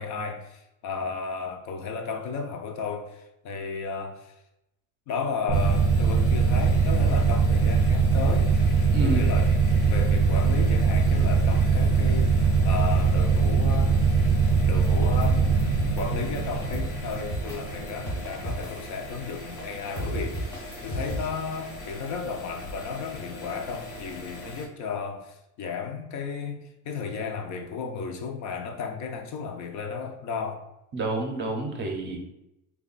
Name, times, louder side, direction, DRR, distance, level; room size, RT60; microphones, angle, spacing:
voice 1, 0.0-4.3 5.1-8.6 9.0-9.5 9.8-14.0 14.7-15.6 16.0-30.6, left 5 dB, 50° left, 0.5 m, -34 dB
sound 1, 5.5-24.7, left 1 dB, 80° left, 1.2 m, -41 dB
sound 2, 5.5-18.7, right 5 dB, 90° right, 0.5 m, -22 dB
voice 2, 8.9-9.2 30.9-32.2, right 2 dB, 30° right, 0.6 m, -29 dB
sound 3, 14.8-16.0 16.3-17.6 17.9-18.8 19.6-19.7 19.9-21.3, equal, 5° left, 0.6 m, -33 dB
3.4 x 2.3 x 3.8 m
cardioid pair, 155°, 36 cm